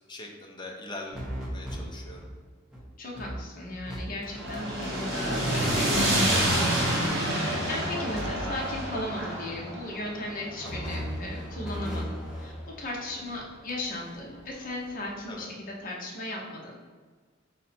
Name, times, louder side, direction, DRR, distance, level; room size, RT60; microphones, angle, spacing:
voice 1, 0.1-1.2 1.5-2.3 10.6-10.9 15.3-15.5, left 2 dB, 25° left, 1 dB, 0.6 m, -42 dB
sound 1, 1.1-2.3 2.7-2.8 3.1-4.0 4.2-4.6 5.9-7.1 8.1-9.1 10.6-12.6, equal, 5° right, 0.9 m, -37 dB
voice 2, 3.0-16.8, left 1 dB, 45° left, -2 dB, 0.9 m, -36 dB
sound 2, 4.2-12.5, right 1 dB, 65° right, 1.3 m, -28 dB
4.1 x 2.6 x 4.2 m, 1.5 s
head